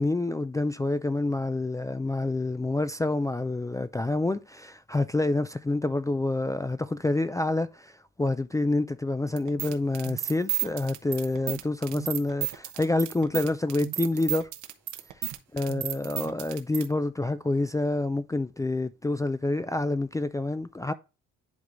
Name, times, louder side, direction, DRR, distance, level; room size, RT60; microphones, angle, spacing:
voice 1, 0.0-14.5 15.5-20.9, left 2 dB, 10° left, 0.4 m, -28 dB
sound 1, 9.4-16.9, right 13 dB, 75° right, 1.0 m, -33 dB
10.5 x 3.8 x 3.1 m
cardioid pair, 90°, 30 cm